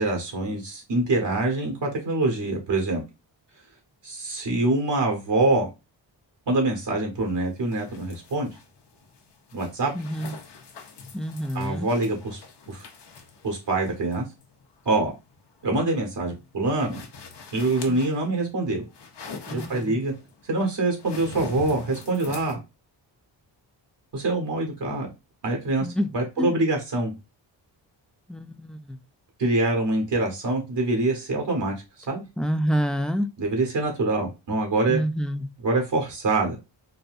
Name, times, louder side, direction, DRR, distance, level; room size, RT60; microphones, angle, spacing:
voice 1, 0.0-3.0 4.0-5.7 6.5-8.5 9.5-9.9 11.5-12.4 12.7-12.9 13.4-14.2 14.8-15.1 15.6-17.0 17.5-18.8 19.5-20.1 20.5-22.6 24.1-25.1 25.4-25.9 26.1-27.1 29.4-31.7 32.1-32.2 33.4-35.0 35.6-36.6, right 2 dB, 65° right, 1.4 m, -25 dB
sound 1, 7.1-22.5, left 4 dB, 65° left, 1.0 m, -44 dB
voice 2, 9.9-10.3 11.1-11.9 17.9-18.0 19.5-20.0 25.8-26.1 26.4-26.5 28.3-29.0 32.4-33.3 34.9-35.5, equal, ahead, 0.5 m, -27 dB
4.0 x 2.2 x 2.5 m
cardioid pair, 75°, 45 cm